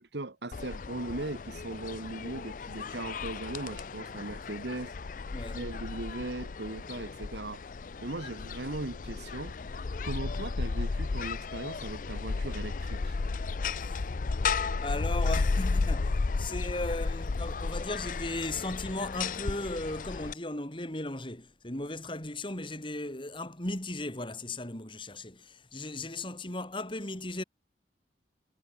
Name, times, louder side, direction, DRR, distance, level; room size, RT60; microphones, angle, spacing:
voice 1, 0.0-4.9 5.5-7.6 8.0-9.6 10.0-13.2, right 2 dB, 75° right, 1.5 m, -38 dB
sound 1, 0.5-20.3, left 4 dB, 50° left, 0.5 m, -34 dB
voice 2, 14.8-27.4, left 2 dB, 30° left, 3.8 m, -36 dB
head